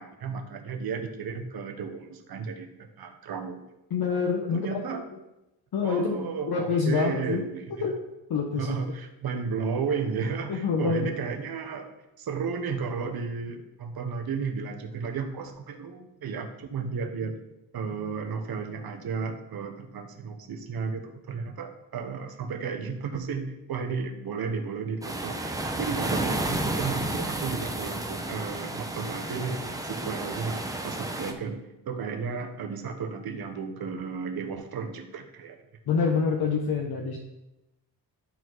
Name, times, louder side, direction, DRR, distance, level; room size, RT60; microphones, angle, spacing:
voice 1, 0.0-3.6 4.4-5.0 5.8-7.9 8.6-17.4 17.7-29.6 29.8-35.6, right 5 dB, 60° right, 5 dB, 1.2 m, -33 dB
voice 2, 3.9-4.6 5.7-6.1 6.5-7.4 7.8-7.9 8.3-8.9 10.5-11.1 35.9-37.2, left 5 dB, 65° left, 1 dB, 1.0 m, -26 dB
sound 1, 25.0-31.3, right 1 dB, 10° right, 0.8 m, -31 dB
11.5 x 4.1 x 4.7 m, 0.95 s
cardioid pair, 110°, 41 cm